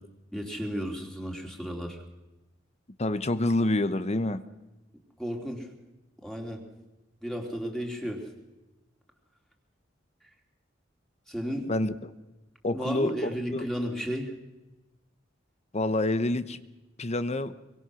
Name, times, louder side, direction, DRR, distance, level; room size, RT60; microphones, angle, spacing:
voice 1, 0.3-2.0 5.2-5.7 6.2-6.6 7.2-8.3 11.3-11.7 12.7-14.3, equal, 5° left, 1 dB, 3.2 m, -33 dB
voice 2, 3.0-4.4 11.7-12.1 12.6-13.7 15.7-16.6 17.0-17.6, left 2 dB, 35° left, 13 dB, 0.9 m, -27 dB
25.5 x 23.5 x 6.3 m, 1.1 s
head